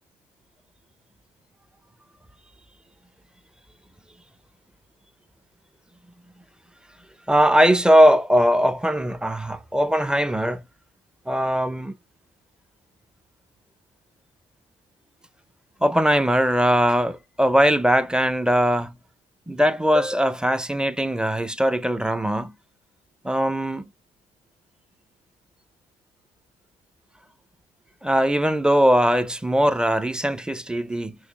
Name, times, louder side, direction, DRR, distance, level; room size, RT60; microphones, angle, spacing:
voice 1, 7.3-10.6 11.3-11.9 15.8-19.0 19.5-22.6 23.2-23.9 28.0-31.2, equal, 5° right, 0.4 m, -20 dB
6.2 x 3.3 x 2.3 m
cardioid pair, 110°, 17 cm